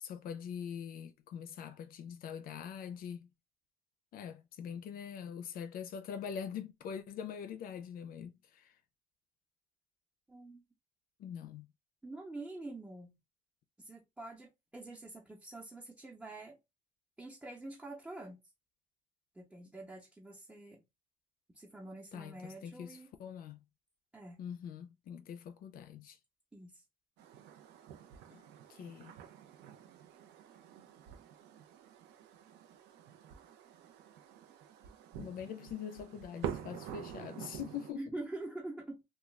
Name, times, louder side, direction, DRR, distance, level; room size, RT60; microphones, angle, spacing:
voice 1, 0.0-3.3 4.1-8.7 11.2-11.7 22.1-22.3 22.6-23.6 24.4-26.2 28.3-28.4 28.7-29.1 35.2-38.0, left 8 dB, 60° left, 0.4 m, -43 dB
voice 2, 10.3-10.6 12.0-13.2 13.8-16.6 17.2-18.4 19.3-20.8 21.5-23.1 24.1-24.4 26.5-26.8 37.9-39.0, right 2 dB, 5° right, 0.7 m, -46 dB
sound 1, 27.2-37.9, right 9 dB, 80° right, 0.5 m, -47 dB
2.4 x 2.2 x 3.1 m
cardioid pair, 110°, 17 cm